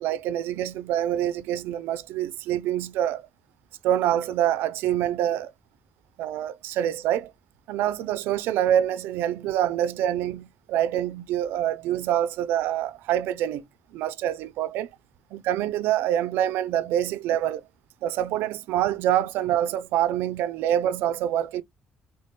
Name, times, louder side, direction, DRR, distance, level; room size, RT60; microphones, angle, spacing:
voice 1, 0.0-3.3 3.8-5.5 6.2-7.3 7.7-13.6 13.9-14.9 15.3-17.6 18.0-21.6, right 11 dB, 90° right, 0.3 m, -26 dB
3.4 x 2.2 x 4.1 m
cardioid pair, 160°, 4 cm